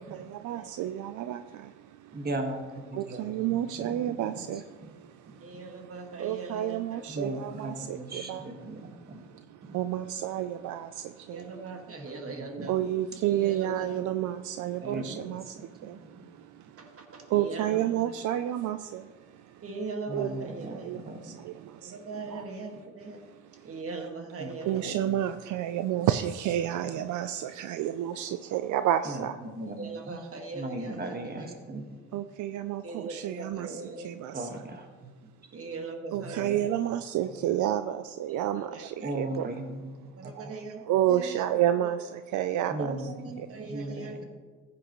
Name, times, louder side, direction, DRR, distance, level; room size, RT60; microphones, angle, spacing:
voice 1, 0.0-2.3 2.9-5.9 6.2-11.5 12.7-19.6 20.1-22.5 23.2-23.8 24.7-29.4 32.1-34.7 36.1-39.5 40.3-43.1 43.4-43.5, right 12 dB, 80° right, 0.5 m, -31 dB
voice 2, 2.1-2.6 3.1-3.2 3.8-3.9 7.1-7.7 8.0-9.2 12.6-12.7 14.9-15.3 20.1-21.3 24.4-24.5 24.9-25.0 29.6-30.2 30.5-31.9 34.3-34.9 36.4-36.6 39.0-40.1 42.7-43.3 43.7-44.2, right 1 dB, 30° right, 1.7 m, -36 dB
voice 3, 5.4-7.0 8.3-8.6 11.3-12.7 13.3-14.0 14.8-15.1 16.8-18.1 19.6-21.1 21.8-23.2 23.6-24.9 25.9-26.0 29.8-31.6 32.8-34.1 35.5-36.6 38.3-38.8 40.2-40.8 41.1-41.4 41.7-41.9 42.7-44.2, right 3 dB, 50° right, 1.9 m, -40 dB
15.0 x 8.6 x 3.1 m
cardioid pair, 90°, 30 cm